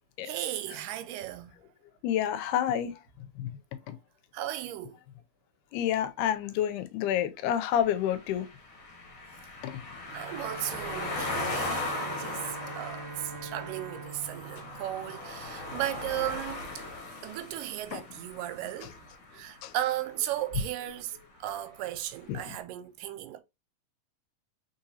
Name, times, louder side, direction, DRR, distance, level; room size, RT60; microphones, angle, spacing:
voice 1, 0.2-1.5 4.3-5.0 10.1-16.8 17.2-19.0 19.3-23.4, right 13 dB, 90° right, 2.2 m, -36 dB
voice 2, 2.0-3.5 3.9-4.0 5.7-8.5 9.6-9.7 17.9-18.0 19.6-19.7 22.3-22.4, left 10 dB, 80° left, 2.0 m, -29 dB
sound 1, 7.7-19.8, left 2 dB, 55° left, 1.6 m, -38 dB
Bowed string instrument, 10.0-15.7, right 4 dB, 65° right, 1.6 m, -44 dB
4.3 x 3.8 x 2.7 m
omnidirectional pair, 3.7 m